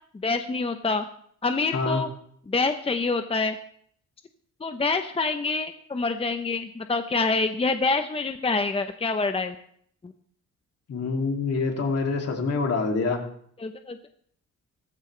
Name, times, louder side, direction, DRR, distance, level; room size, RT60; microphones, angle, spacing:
voice 1, 0.2-1.1 1.4-2.1 2.5-3.6 4.6-9.5 13.6-14.0, left 3 dB, 20° left, 8 dB, 0.8 m, -26 dB
voice 2, 1.7-2.0 10.9-13.2, left 4 dB, 55° left, 2 dB, 2.8 m, -26 dB
15.0 x 14.5 x 3.3 m, 0.63 s
cardioid pair, 90°, 30 cm